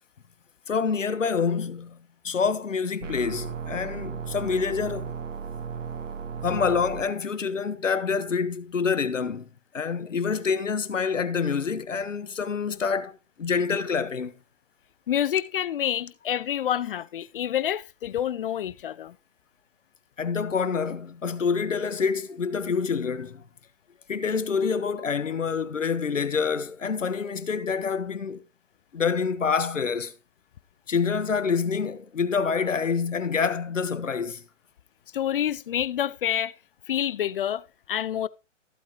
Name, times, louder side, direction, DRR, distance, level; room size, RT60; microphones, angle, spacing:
voice 1, 0.7-5.2 6.4-9.5 9.7-14.3 20.2-23.4 24.1-28.4 28.9-30.1 30.9-34.4, left 5 dB, 80° left, 1.4 m, -27 dB
sound 1, 3.0-7.0, right 6 dB, 80° right, 0.9 m, -35 dB
voice 2, 15.1-19.1 35.1-36.5 36.9-38.3, left 10 dB, 45° left, 0.6 m, -28 dB
14.5 x 8.6 x 3.1 m
figure-of-eight pair, 130°, 37 cm